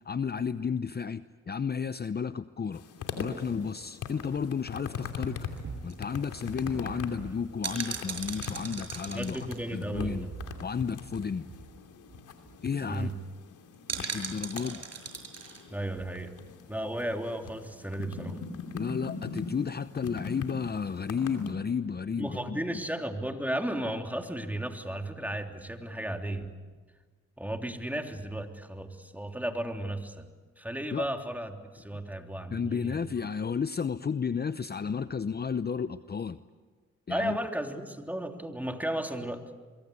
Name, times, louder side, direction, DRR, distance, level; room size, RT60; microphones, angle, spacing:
voice 1, 0.0-2.8 3.2-5.4 5.8-9.4 9.7-10.3 10.6-11.5 12.6-13.1 14.0-14.9 18.7-22.8 30.9-31.1 31.9-32.0 32.5-36.4 37.1-37.4, left 6 dB, 35° left, 13 dB, 0.7 m, -32 dB
Smartphone Touchscreen Tapping Texting or Messaging Gaming, 2.7-21.5, left 5 dB, 85° left, 2.9 m, -42 dB
sound 1, 5.5-10.8 11.1-11.2 11.5-11.7 12.1-12.2 12.5-12.8 13.9-15.6 16.0-16.1, right 5 dB, 55° right, 6.1 m, -39 dB
voice 2, 9.1-10.3 12.9-13.1 15.7-16.3 16.7-18.4 22.2-26.5 27.4-30.3 30.6-33.0 37.1-39.4, right 1 dB, 5° right, 4 dB, 3.3 m, -34 dB
25.5 x 23.0 x 8.4 m, 1.4 s
cardioid pair, 60°, 30 cm